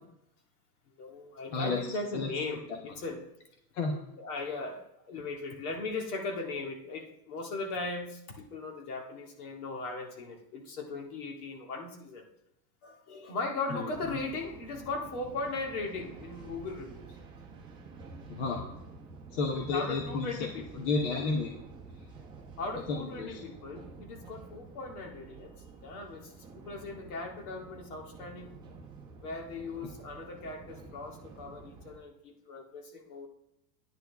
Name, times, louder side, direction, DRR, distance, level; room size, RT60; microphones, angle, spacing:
voice 1, 1.0-3.2 4.2-12.3 12.8-17.2 19.7-20.9 22.6-25.5 25.8-28.6 29.2-33.3, left 3 dB, 60° left, 1 dB, 2.1 m, -38 dB
voice 2, 13.7-14.2 18.3-18.6 19.3-20.5 20.8-21.5 22.9-23.4, left 3 dB, 45° left, 1 dB, 1.1 m, -32 dB
sound 1, 13.9-32.0, right 4 dB, 10° right, 0.9 m, -50 dB
11.5 x 9.8 x 3.5 m, 0.82 s
supercardioid pair, 175°, 50 cm